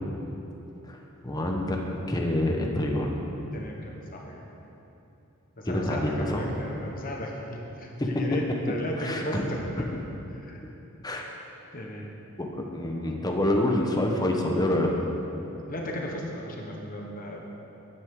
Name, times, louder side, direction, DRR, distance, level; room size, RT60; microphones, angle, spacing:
voice 1, 1.2-1.8 2.1-3.1 5.7-6.4 8.0-9.4 11.0-11.3 12.4-14.9, left 1 dB, 20° left, 1 dB, 1.1 m, -27 dB
voice 2, 3.5-4.4 5.6-9.8 10.3-10.6 11.7-12.1 15.7-17.4, equal, 40° left, 0 dB, 1.3 m, -35 dB
12.5 x 9.6 x 3.8 m, 3.0 s
head